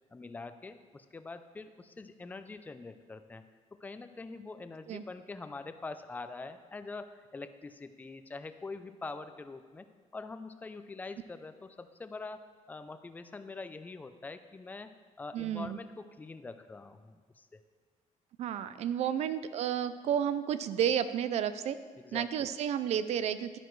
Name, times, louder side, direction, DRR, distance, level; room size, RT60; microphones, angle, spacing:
voice 1, 0.1-3.4 3.7-12.4 12.7-14.9 15.2-17.6 22.0-22.3, left 3 dB, 10° left, 9 dB, 0.4 m, -44 dB
voice 2, 15.3-15.8 18.4-21.8 22.1-23.6, right 9 dB, 55° right, 13 dB, 0.4 m, -31 dB
11.0 x 9.2 x 3.1 m, 1.5 s
cardioid pair, 155°, 13 cm